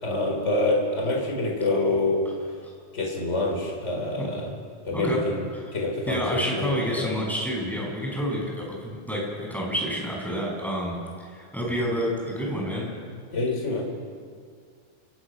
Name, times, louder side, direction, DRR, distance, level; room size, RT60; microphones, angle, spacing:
voice 1, 0.0-2.2 2.9-4.5 4.9-7.3 13.3-13.8, left 2 dB, 15° left, 0 dB, 4.2 m, -26 dB
voice 2, 6.1-12.9, equal, ahead, -3 dB, 6.7 m, -29 dB
29.0 x 18.0 x 6.4 m, 2.1 s
omnidirectional pair, 4.5 m